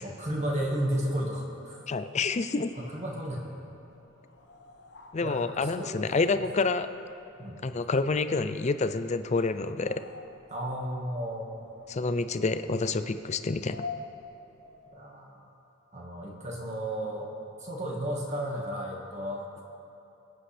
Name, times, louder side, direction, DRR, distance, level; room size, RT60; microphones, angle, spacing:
voice 1, 0.0-1.8 2.8-3.5 5.2-6.2 7.4-7.6 10.5-11.7 14.9-15.5 15.9-17.3 17.6-19.6, right 1 dB, 35° right, -1 dB, 1.7 m, -33 dB
voice 2, 1.9-2.7 5.1-6.9 7.6-10.0 11.9-13.8, left 3 dB, 30° left, 11 dB, 0.4 m, -28 dB
sound 1, 2.5-15.1, left 3 dB, 55° left, 0.9 m, -48 dB
23.0 x 8.5 x 3.4 m, 3.0 s
head